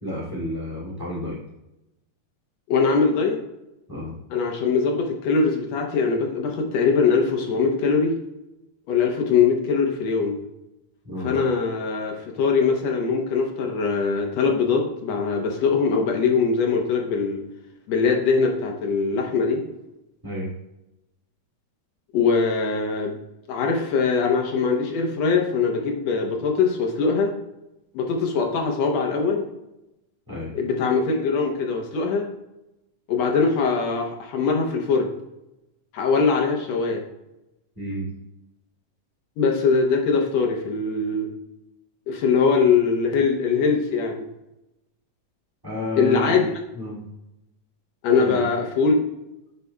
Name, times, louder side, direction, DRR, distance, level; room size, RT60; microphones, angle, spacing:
voice 1, 0.0-1.4 3.9-4.1 11.0-11.4 20.2-20.5 30.3-30.5 37.7-38.1 45.6-46.4 46.7-47.0 48.2-48.5, left 1 dB, 10° right, -5 dB, 1.9 m, -31 dB
voice 2, 2.7-3.4 4.3-8.2 8.9-10.4 11.2-17.4 17.9-19.6 22.1-23.1 23.5-27.3 27.9-29.5 30.6-32.3 33.1-35.1 35.9-37.0 39.4-41.3 42.1-44.3 46.0-46.5 48.0-49.0, left 5 dB, 65° left, 2 dB, 1.9 m, -22 dB
9.6 x 5.2 x 2.2 m, 0.92 s
omnidirectional pair, 3.5 m